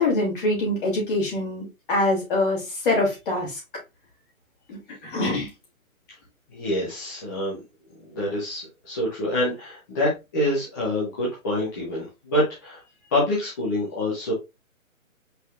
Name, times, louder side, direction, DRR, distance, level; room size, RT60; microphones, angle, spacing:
voice 1, 0.0-3.6 4.7-5.5, left 2 dB, 40° left, 3.0 m, -24 dB
voice 2, 6.5-7.6 8.1-12.8 13.1-14.3, left 1 dB, 15° left, 0.8 m, -26 dB
5.3 x 3.8 x 2.5 m
hypercardioid pair, 155°, 42 cm